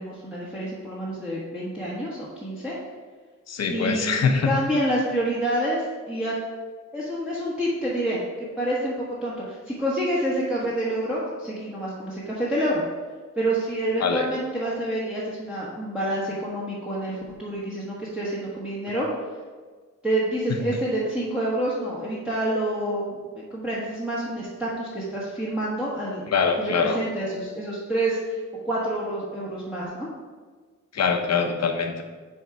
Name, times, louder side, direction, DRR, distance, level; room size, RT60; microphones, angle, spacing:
voice 1, 0.0-2.8 3.7-6.3 6.9-12.8 13.4-19.1 20.0-26.3 26.6-28.4 28.6-30.1, right 1 dB, 5° right, -8 dB, 1.2 m, -28 dB
voice 2, 3.5-4.5 14.0-14.3 26.3-27.0 30.9-32.0, left 5 dB, 55° left, 5 dB, 0.8 m, -23 dB
6.8 x 3.6 x 4.6 m, 1.5 s
wide cardioid pair, 100°, 32 cm